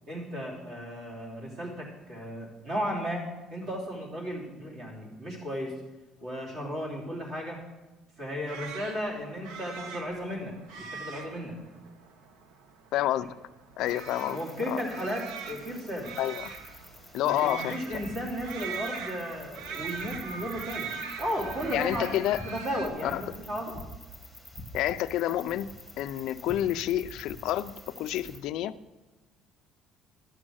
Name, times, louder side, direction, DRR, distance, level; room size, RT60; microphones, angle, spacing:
voice 1, 0.1-5.8 6.2-7.6 8.2-11.6 14.2-16.1 17.2-20.9 21.2-22.1 22.4-23.8, equal, 40° right, -2 dB, 2.9 m, -35 dB
sound 1, 8.5-22.9, right 5 dB, 90° right, 1.0 m, -41 dB
voice 2, 12.9-13.4 13.8-14.4 14.7-14.8 16.2-16.5 17.1-17.8 21.7-22.4 23.0-23.2 24.7-25.7 26.0-28.7, left 13 dB, 60° left, 13 dB, 0.4 m, -29 dB
sound 2, 13.8-28.4, left 1 dB, 5° right, 1.8 m, -47 dB
11.5 x 7.4 x 6.3 m, 1.2 s
cardioid pair, 180°, 0 cm